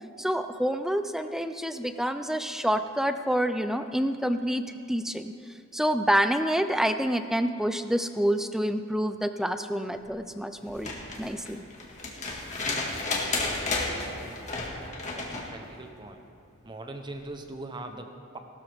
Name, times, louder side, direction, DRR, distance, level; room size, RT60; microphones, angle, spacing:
voice 1, 0.2-5.3 5.7-11.6, equal, ahead, 9 dB, 0.4 m, -27 dB
sound 1, 10.7-15.5 17.1-17.2, left 3 dB, 35° left, 1.8 m, -32 dB
voice 2, 14.0-14.5 15.1-16.3 16.6-18.4, right 2 dB, 20° right, 6 dB, 0.9 m, -41 dB
18.0 x 13.0 x 3.5 m, 2.6 s
head